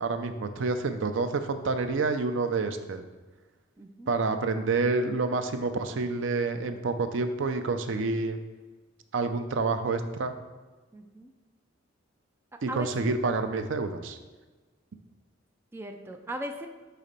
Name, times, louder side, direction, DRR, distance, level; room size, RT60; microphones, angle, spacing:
voice 1, 0.0-3.0 4.1-8.4 9.1-10.3 12.6-14.2, right 3 dB, 70° right, 8 dB, 0.5 m, -28 dB
voice 2, 3.8-4.1 10.9-11.3 12.7-13.2 15.7-16.7, equal, 10° right, 4 dB, 0.4 m, -38 dB
5.8 x 4.2 x 5.2 m, 1.3 s
head